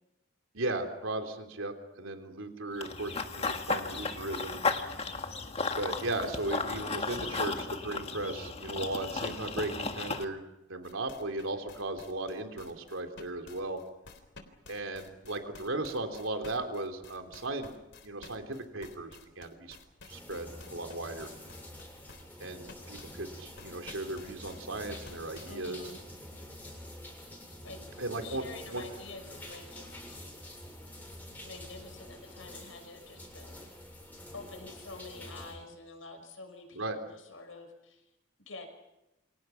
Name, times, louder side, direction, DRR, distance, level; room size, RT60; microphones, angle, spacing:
voice 1, 0.5-4.6 5.7-10.4 10.7-13.8 14.7-17.7 18.0-19.8 20.0-21.3 22.4-25.8 28.0-28.8 36.7-37.0, right 2 dB, 75° right, 6 dB, 3.5 m, -36 dB
Run / Bird vocalization bird call bird song, 2.8-10.2, left 4 dB, 30° left, 1.8 m, -34 dB
sound 1, 10.8-25.7, left 3 dB, 60° left, 3.7 m, -52 dB
sound 2, 20.1-35.5, left 1 dB, 10° left, 7.1 m, -47 dB
voice 2, 25.5-26.0 27.6-27.8 28.2-30.2 31.4-33.7 34.3-38.1 38.5-38.7, left 3 dB, 75° left, 5 dB, 6.1 m, -47 dB
29.5 x 25.5 x 5.9 m, 0.93 s
head